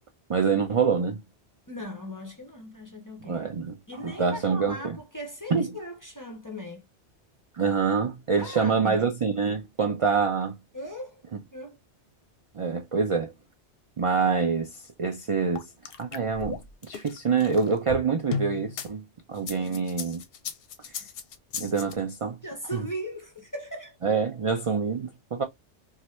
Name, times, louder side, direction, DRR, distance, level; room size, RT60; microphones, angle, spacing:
voice 1, 0.3-1.2 3.3-3.8 4.0-5.0 5.5-5.7 7.5-10.5 12.5-13.3 14.0-15.7 16.0-16.6 16.9-20.2 21.6-22.4 22.7-22.8 24.0-25.4, right 5 dB, 55° right, 0.3 m, -26 dB
voice 2, 1.7-3.5 3.9-6.9 8.4-9.0 10.7-11.2 11.5-11.8 19.5-19.9 20.8-21.0 22.4-24.2, equal, 25° left, 0.5 m, -39 dB
sound 1, 15.6-18.9 19.4-21.9, left 6 dB, 65° left, 0.7 m, -36 dB
2.7 x 2.5 x 3.0 m
omnidirectional pair, 1.2 m